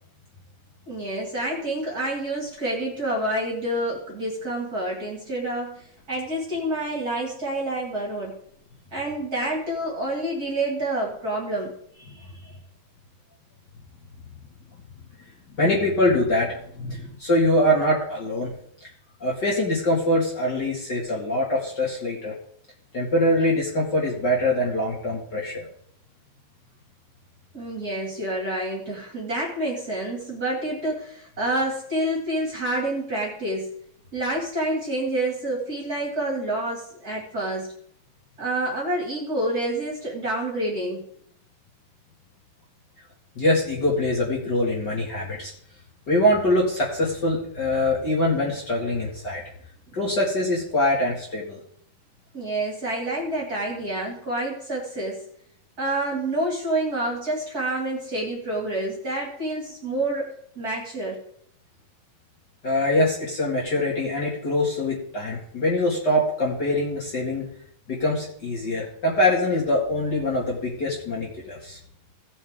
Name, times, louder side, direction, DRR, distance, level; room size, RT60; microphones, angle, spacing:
voice 1, 0.9-8.4 8.9-11.7 27.5-33.7 34.1-37.7 38.4-41.0 52.3-55.2 55.8-61.2, right 1 dB, 35° right, -2 dB, 2.4 m, -28 dB
voice 2, 15.6-18.5 19.2-22.3 22.9-25.7 43.4-45.5 46.1-49.4 49.9-51.6 62.6-67.5 67.9-71.8, left 1 dB, 40° left, -4 dB, 2.4 m, -23 dB
17.5 x 7.1 x 3.6 m, 0.67 s
omnidirectional pair, 3.5 m